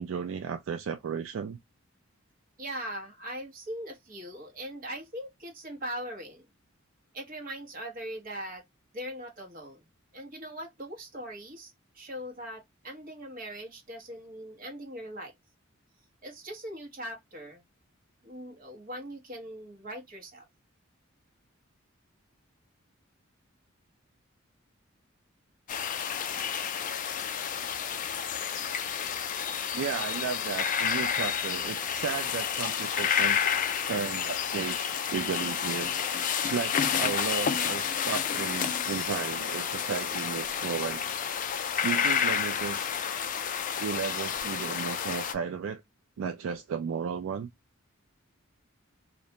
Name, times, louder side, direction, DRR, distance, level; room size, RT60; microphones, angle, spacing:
voice 1, 0.0-1.6 29.7-33.4 33.9-36.1 36.4-41.0 41.8-42.9 43.8-45.8 46.2-47.5, right 6 dB, 70° right, 0.3 m, -34 dB
voice 2, 2.6-6.4 7.1-8.6 8.9-9.8 10.1-15.3 16.2-17.6 18.2-20.5, equal, 45° right, 1.0 m, -40 dB
sound 1, 25.7-45.3, left 8 dB, 40° left, 0.4 m, -30 dB
2.5 x 2.1 x 2.8 m
head